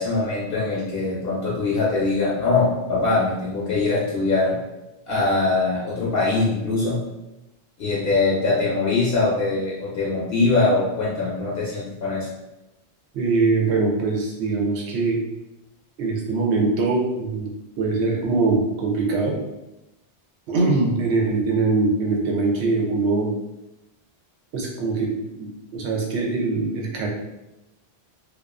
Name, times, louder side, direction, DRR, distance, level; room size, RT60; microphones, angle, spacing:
voice 1, 0.0-4.6 5.1-7.0 7.8-12.3, left 3 dB, 65° left, -6 dB, 0.8 m, -22 dB
voice 2, 13.1-15.2 16.0-17.5 17.8-19.4 20.5-23.3 24.5-27.1, right 3 dB, 80° right, -1 dB, 0.9 m, -22 dB
2.3 x 2.3 x 2.3 m, 0.97 s
omnidirectional pair, 1.1 m